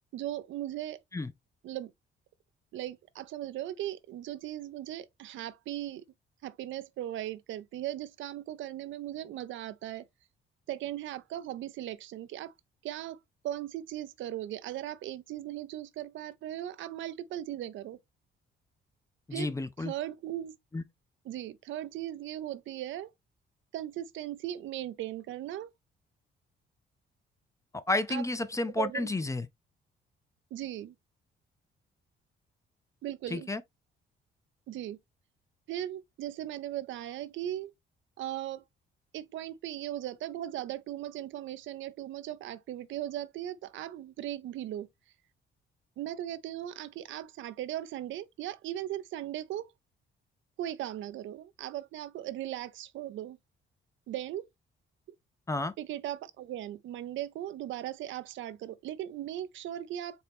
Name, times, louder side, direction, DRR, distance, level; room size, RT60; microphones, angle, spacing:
voice 1, 0.1-1.0 1.6-1.9 2.7-6.0 6.4-10.1 10.7-12.5 12.8-13.2 13.4-18.0 19.3-19.5 19.8-20.5 21.3-23.1 23.7-25.7 28.1-28.2 28.8-29.1 30.5-30.9 33.0-33.5 34.7-35.0 35.7-37.7 38.2-38.6 39.1-44.9 46.0-49.7 50.6-53.4 54.1-54.4 55.8-60.2, right 12 dB, 75° right, 0.5 m, -38 dB
voice 2, 19.3-19.9 20.7-20.8 27.7-29.5 33.3-33.6 55.5-55.7, left 2 dB, 15° left, 0.4 m, -31 dB
4.3 x 2.9 x 3.4 m
cardioid pair, 90°, 20 cm